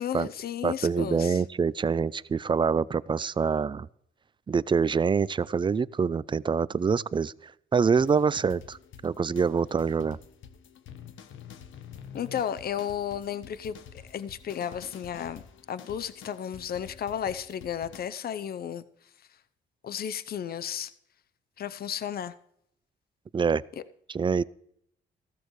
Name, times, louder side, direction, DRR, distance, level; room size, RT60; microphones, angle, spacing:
voice 1, 0.0-1.4 12.1-13.8 14.1-15.4 15.7-18.8 19.8-20.9 21.6-22.3, left 9 dB, 50° left, 14 dB, 0.7 m, -33 dB
voice 2, 0.6-3.9 4.5-8.8 9.0-10.2 23.3-23.6 24.1-24.4, right 5 dB, 25° right, 20 dB, 0.4 m, -25 dB
sound 1, 8.0-18.1, left 8 dB, 75° left, 1.1 m, -48 dB
15.5 x 13.5 x 3.2 m, 0.71 s
cardioid pair, 90°, 20 cm